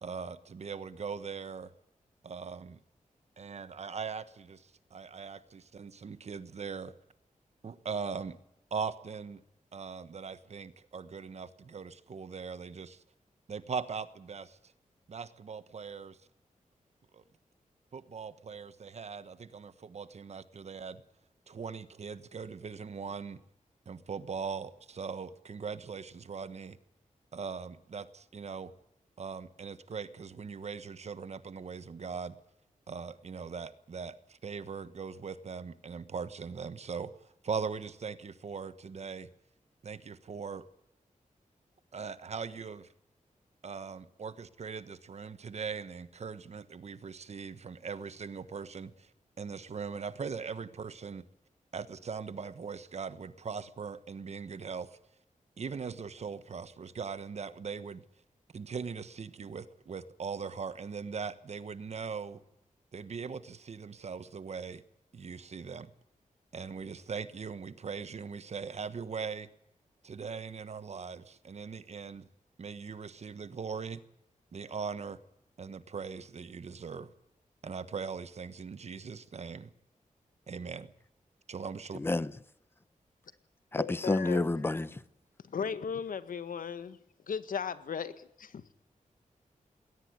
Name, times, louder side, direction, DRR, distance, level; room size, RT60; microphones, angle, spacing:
voice 1, 0.0-1.7 2.2-2.8 3.4-6.9 7.6-8.4 8.7-9.4 9.7-13.0 13.5-14.6 15.1-16.2 17.1-17.2 17.9-21.0 21.5-23.4 23.8-26.8 27.3-28.7 29.2-32.4 32.9-39.3 39.8-40.6 41.9-42.9 43.6-49.1 49.4-51.2 51.7-55.0 55.6-58.0 58.5-62.4 62.9-64.8 65.1-65.9 66.5-69.5 70.0-72.3 72.6-74.0 74.5-75.2 75.6-77.1 77.6-79.7 80.5-80.9 81.5-82.0, right 5 dB, 50° right, 1.3 m, -40 dB
voice 2, 81.9-82.3 83.7-84.9, left 2 dB, 15° left, 0.8 m, -29 dB
voice 3, 83.8-84.5 85.5-87.0 87.3-88.6, left 6 dB, 90° left, 1.7 m, -36 dB
20.5 x 18.5 x 9.7 m
wide cardioid pair, 180°, 14 cm